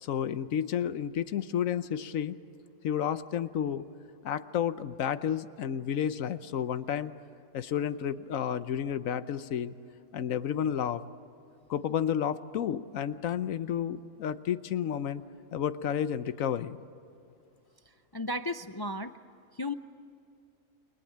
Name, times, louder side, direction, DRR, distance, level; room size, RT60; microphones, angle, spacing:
voice 1, 0.0-2.4 2.8-3.9 4.2-7.1 7.5-9.7 10.1-11.0 11.7-15.2 15.5-16.8, left 9 dB, 90° left, 13 dB, 1.2 m, -31 dB
voice 2, 18.1-19.1 19.6-19.7, left 1 dB, 35° left, 9 dB, 0.4 m, -34 dB
29.5 x 22.5 x 8.6 m, 2.6 s
omnidirectional pair, 1.3 m